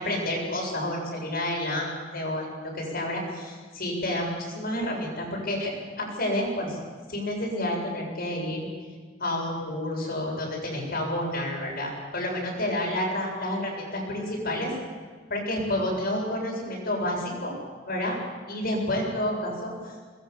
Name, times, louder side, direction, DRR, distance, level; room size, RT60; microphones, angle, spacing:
voice 1, 0.0-2.5 2.7-6.8 7.1-8.7 9.2-14.7 15.3-17.5 17.9-18.1 18.5-19.9, left 1 dB, 50° left, -1 dB, 7.7 m, -29 dB
22.5 x 21.0 x 7.3 m, 1.5 s
head